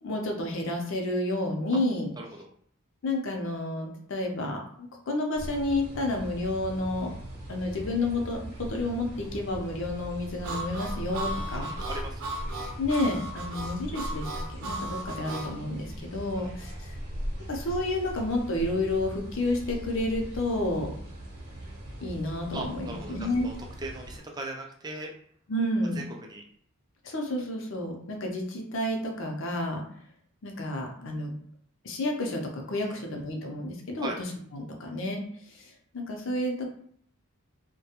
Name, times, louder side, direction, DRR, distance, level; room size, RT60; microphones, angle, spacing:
voice 1, 0.0-2.1 3.0-7.1 7.5-11.7 12.8-17.0 17.5-20.9 22.0-23.5 25.5-26.1 27.0-29.8 30.4-31.3 31.8-34.1 34.5-35.2 35.5-36.7, left 1 dB, 60° left, 2 dB, 0.6 m, -30 dB
voice 2, 2.2-2.5 11.5-12.3 16.4-16.6 22.5-25.1 26.0-26.4 32.9-33.0 34.0-34.2, right 2 dB, 20° right, 1 dB, 0.3 m, -39 dB
sound 1, 5.3-24.2, equal, 50° right, 0.8 m, -39 dB
Harmonica, 10.4-15.5, right 1 dB, 80° right, 0.6 m, -36 dB
2.3 x 2.2 x 2.8 m, 0.64 s
head